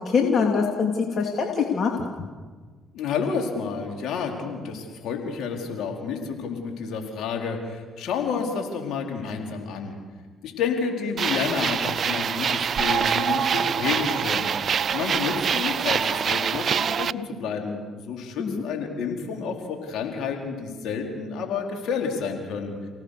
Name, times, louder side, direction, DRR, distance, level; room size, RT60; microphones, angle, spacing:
voice 1, 0.0-1.9 18.4-18.6, left 5 dB, 50° left, 1 dB, 3.1 m, -23 dB
voice 2, 2.9-9.9 10.4-14.5 14.9-17.8 18.0-22.7, left 5 dB, 70° left, 2 dB, 4.5 m, -30 dB
sound 1, 11.2-17.1, right 7 dB, 50° right, 0.6 m, -25 dB
30.0 x 18.0 x 6.9 m, 1.5 s
supercardioid pair, 70°, 0 cm